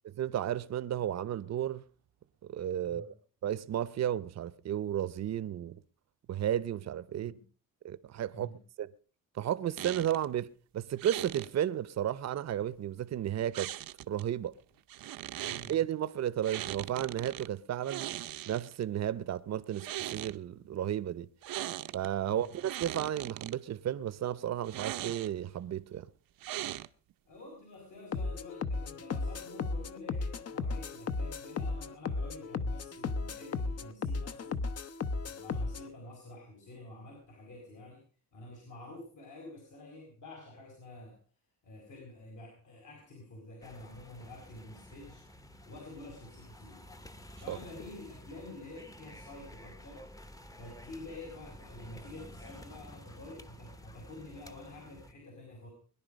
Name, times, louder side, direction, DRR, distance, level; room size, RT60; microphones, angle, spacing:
voice 1, 0.0-1.8 2.5-3.1 3.4-5.8 6.3-7.3 7.8-8.5 8.8-8.9 9.3-10.5 10.7-13.7 14.1-14.5 15.7-18.1 18.5-21.3 21.9-26.1 47.5-47.6, right 11 dB, 50° right, 0.7 m, -33 dB
sound 1, 9.8-10.3 11.0-11.5 13.5-14.2 14.9-15.7 16.4-17.5 17.8-18.8 19.6-20.4 21.4-22.1 22.4-23.6 24.6-25.5 26.4-27.1, right 14 dB, 85° right, 0.7 m, -39 dB
voice 2, 15.5-15.8 22.3-22.6 27.3-34.6 35.2-38.0 38.3-41.2 41.6-45.2 45.7-46.9 47.4-50.0 50.6-55.7, left 2 dB, 65° left, 5.5 m, -49 dB
sound 2, 28.1-35.9, left 4 dB, 45° left, 0.9 m, -35 dB
sound 3, 43.6-55.1, left 1 dB, 10° left, 0.8 m, -51 dB
21.5 x 11.0 x 5.2 m
wide cardioid pair, 145°, 33 cm